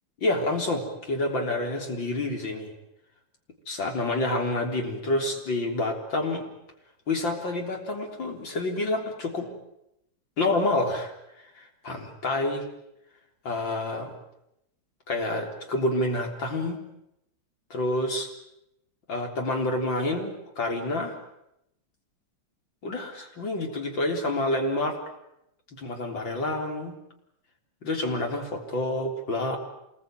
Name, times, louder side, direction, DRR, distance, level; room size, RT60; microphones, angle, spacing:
voice 1, 0.2-2.7 3.7-6.4 7.1-9.5 10.4-11.1 11.6-12.7 13.4-14.1 15.1-16.8 17.7-18.3 19.1-21.2 22.8-25.0 25.8-27.0 27.8-29.6, left 2 dB, 60° left, 2 dB, 4.5 m, -28 dB
27.0 x 21.5 x 9.1 m, 0.83 s
omnidirectional pair, 2.4 m